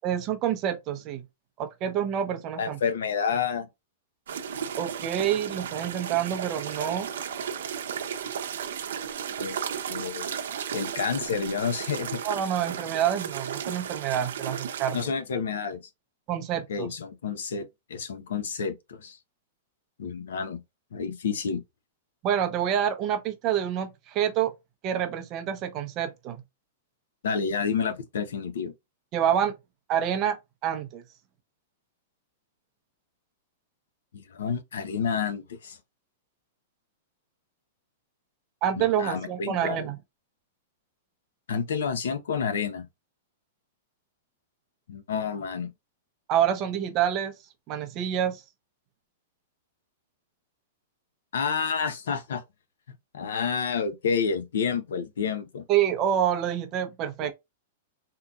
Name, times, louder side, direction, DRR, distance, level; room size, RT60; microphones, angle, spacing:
voice 1, 0.0-1.2 1.6-2.8 4.8-7.1 12.2-15.0 16.3-16.9 22.2-24.5 24.8-26.4 29.1-29.5 29.9-30.4 30.6-31.0 38.6-40.0 46.3-47.3 47.7-48.4 55.7-57.3, right 10 dB, 25° right, 0.6 m, -27 dB
voice 2, 2.6-3.7 9.4-9.6 9.9-10.3 10.7-12.2 14.9-15.8 16.7-19.2 20.0-20.6 20.9-21.6 27.2-28.7 34.1-35.8 38.8-39.9 41.5-42.9 44.9-45.7 51.3-52.4 53.1-55.6 57.2-57.3, left 6 dB, 85° left, 0.7 m, -29 dB
sound 1, 4.3-15.0, right 8 dB, 80° right, 0.6 m, -34 dB
3.7 x 2.8 x 2.3 m
supercardioid pair, 175°, 0 cm